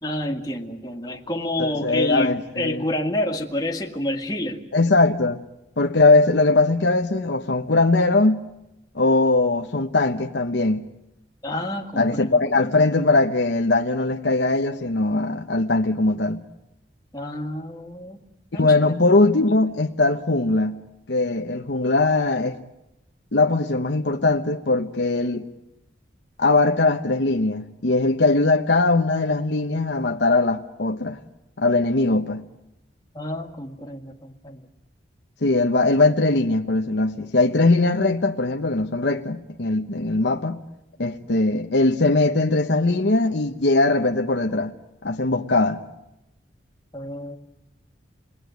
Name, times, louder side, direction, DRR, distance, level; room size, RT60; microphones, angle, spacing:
voice 1, 0.0-4.6 11.4-12.8 17.1-18.2 18.5-18.9 33.1-34.6 46.9-47.4, left 1 dB, 20° left, 1.9 m, -29 dB
voice 2, 1.6-2.8 4.7-5.4 5.8-8.5 8.9-10.9 12.0-16.4 18.5-20.8 21.1-22.6 23.3-25.5 26.4-31.2 31.6-32.4 35.4-40.6 41.0-44.7 45.0-45.8, left 2 dB, 65° left, 1.0 m, -20 dB
29.0 x 20.5 x 9.3 m
head